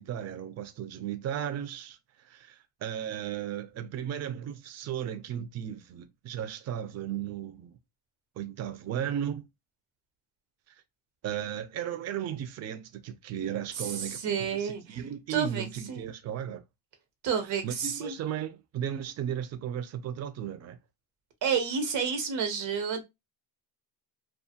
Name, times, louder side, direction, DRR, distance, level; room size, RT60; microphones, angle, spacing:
voice 1, 0.0-7.8 8.4-9.4 11.2-16.6 17.6-20.8, right 10 dB, 40° right, 0.4 m, -35 dB
voice 2, 13.8-15.0 15.3-16.1 17.2-18.1 21.4-23.0, right 6 dB, 85° right, 1.0 m, -30 dB
2.4 x 2.3 x 2.7 m
cardioid pair, 120°, 44 cm